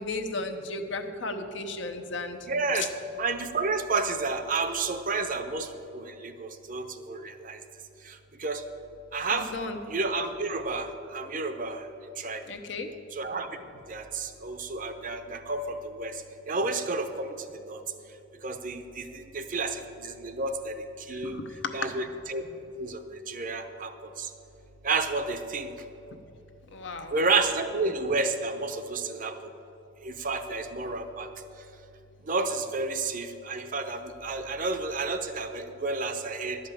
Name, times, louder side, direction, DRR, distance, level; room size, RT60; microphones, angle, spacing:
voice 1, 0.0-2.4 2.7-2.9 9.3-9.8 12.5-12.9 21.1-21.7 26.7-27.1, left 3 dB, 65° left, 6 dB, 0.9 m, -34 dB
voice 2, 2.5-2.9 3.2-5.7 5.9-7.6 8.4-8.6 9.1-9.5 9.9-10.9 11.1-11.8 12.2-12.4 13.2-13.5 13.9-16.1 16.5-17.3 17.7-17.8 18.4-19.0 19.3-20.7 21.1-21.4 21.7-22.4 22.8-23.0 23.3-23.9 24.8-25.7 27.1-29.3 30.0-31.3 32.3-36.6, right 3 dB, 45° right, 8 dB, 0.7 m, -30 dB
11.5 x 5.3 x 8.3 m, 2.8 s
head